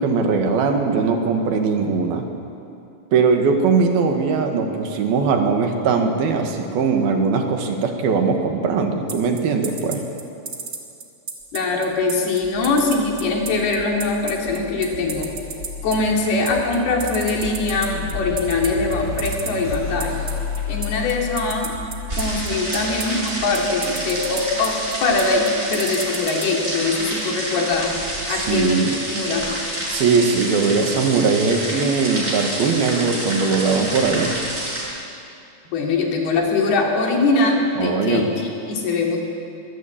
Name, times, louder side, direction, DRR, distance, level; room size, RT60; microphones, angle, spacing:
voice 1, 0.0-2.3 3.1-10.0 28.3-28.9 29.9-34.4 37.8-38.3, right 5 dB, 70° right, 4 dB, 3.6 m, -20 dB
sound 1, 9.1-26.5, right 5 dB, 35° right, 2.2 m, -31 dB
voice 2, 11.5-15.3 15.8-20.2 20.7-21.8 22.2-27.9 28.3-29.5 35.7-39.2, left 3 dB, 80° left, 0 dB, 4.9 m, -22 dB
sound 2, 12.4-25.6, left 5 dB, 40° left, 1.4 m, -33 dB
sound 3, 22.1-34.8, right 1 dB, 20° right, 6.4 m, -28 dB
24.0 x 19.0 x 8.7 m, 2.6 s
omnidirectional pair, 4.5 m